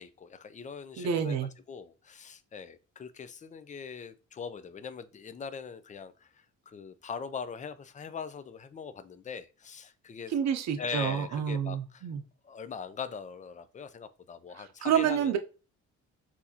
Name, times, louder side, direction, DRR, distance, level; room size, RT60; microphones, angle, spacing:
voice 1, 0.0-1.4 1.7-10.3 10.8-12.1 12.4-15.4, left 6 dB, 25° left, 0.5 m, -41 dB
voice 2, 1.0-1.5 10.3-12.2 14.6-15.4, right 8 dB, 60° right, 0.7 m, -29 dB
6.1 x 2.8 x 2.8 m
cardioid pair, 90°, 30 cm